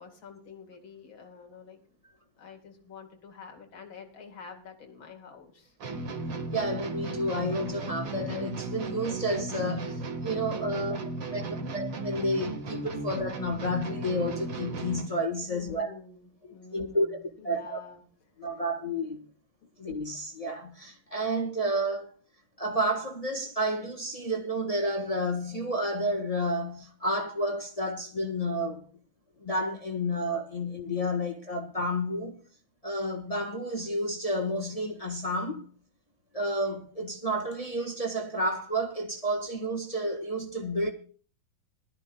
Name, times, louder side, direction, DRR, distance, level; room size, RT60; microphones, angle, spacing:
voice 1, 0.0-1.8 2.4-5.7 10.6-11.7 15.4-18.0, left 6 dB, 70° left, 3.1 m, -48 dB
sound 1, 5.8-15.2, right 3 dB, 90° right, 2.8 m, -35 dB
voice 2, 6.5-11.0 11.3-11.4 11.7-15.9 16.7-17.2 17.4-17.8 18.4-19.2 19.8-22.1 22.6-28.8 29.4-32.4 32.8-35.6 36.3-40.9, equal, 20° left, 1.6 m, -30 dB
21.5 x 13.0 x 2.4 m
omnidirectional pair, 2.2 m